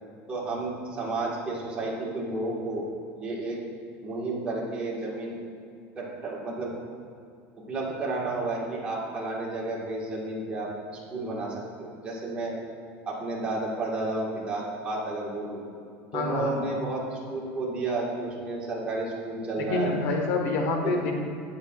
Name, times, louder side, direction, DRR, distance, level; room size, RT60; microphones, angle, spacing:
voice 1, 0.3-2.9 3.2-3.6 4.0-5.4 5.9-6.7 7.6-12.6 13.0-15.6 16.1-20.0 20.8-20.9, right 2 dB, 15° right, -5 dB, 1.5 m, -32 dB
voice 2, 16.1-16.5 19.6-21.1, left 3 dB, 65° left, 2 dB, 1.3 m, -27 dB
16.0 x 5.5 x 2.4 m, 2.5 s
cardioid pair, 170°, 6 cm